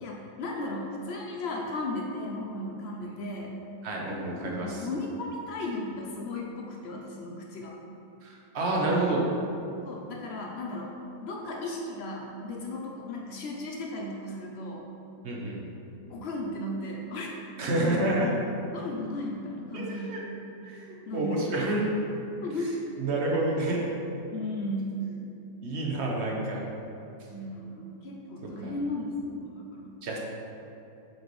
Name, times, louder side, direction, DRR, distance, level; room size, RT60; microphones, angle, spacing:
voice 1, 0.0-3.6 4.4-7.7 9.8-10.9 11.2-14.8 16.1-17.3 18.7-20.2 21.1-21.7 22.4-22.7 24.3-25.0 27.3-30.0, left 2 dB, 85° left, -1 dB, 0.5 m, -35 dB
voice 2, 3.8-4.9 8.2-9.2 15.2-15.7 17.6-18.3 19.7-20.2 20.6-21.9 22.6-23.9 25.6-26.6 28.4-28.7 30.0-30.2, right 2 dB, 45° right, -2 dB, 1.0 m, -29 dB
7.9 x 4.5 x 3.1 m, 2.8 s
omnidirectional pair, 1.8 m